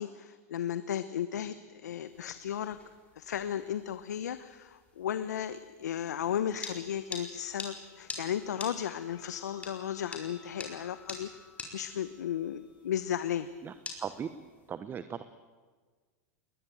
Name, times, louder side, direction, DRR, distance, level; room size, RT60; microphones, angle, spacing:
voice 1, 0.0-2.8 3.2-11.3 11.7-13.5, left 9 dB, 85° left, 13 dB, 0.9 m, -35 dB
sound 1, 2.1-14.7, left 3 dB, 15° left, 4.6 m, -47 dB
Keyboard (musical), 6.6-13.2, left 5 dB, 45° left, 5.2 m, -59 dB
voice 2, 14.7-15.2, right 7 dB, 25° right, 12 dB, 1.0 m, -37 dB
21.5 x 20.5 x 9.2 m, 1.5 s
hypercardioid pair, 120°, 9 cm